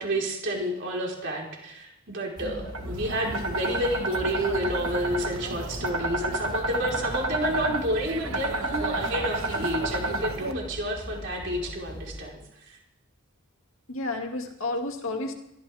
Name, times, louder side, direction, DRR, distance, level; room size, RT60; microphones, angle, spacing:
voice 1, 0.0-12.8, right 1 dB, 55° right, -1 dB, 4.3 m, -30 dB
sound 1, 2.4-12.3, left 1 dB, 20° left, 1.2 m, -41 dB
sound 2, 2.7-10.5, right 2 dB, 75° right, 1.4 m, -31 dB
voice 2, 13.9-15.3, left 2 dB, 65° left, 3 dB, 2.4 m, -31 dB
23.5 x 13.5 x 3.6 m, 0.90 s
head